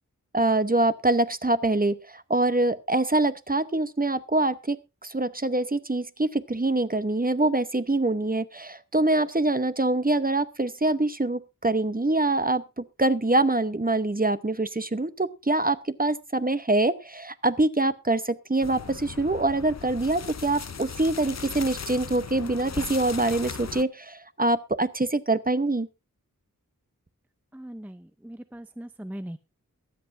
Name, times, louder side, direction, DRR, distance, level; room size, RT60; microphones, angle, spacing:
voice 1, 0.3-4.8 5.0-25.9, right 2 dB, 25° right, 13 dB, 0.8 m, -25 dB
sound 1, 18.6-23.8, left 6 dB, 50° left, 0.6 m, -38 dB
voice 2, 27.5-29.4, right 1 dB, 5° right, 12 dB, 0.5 m, -40 dB
22.5 x 8.0 x 2.6 m, 0.26 s
wide cardioid pair, 45°, 33 cm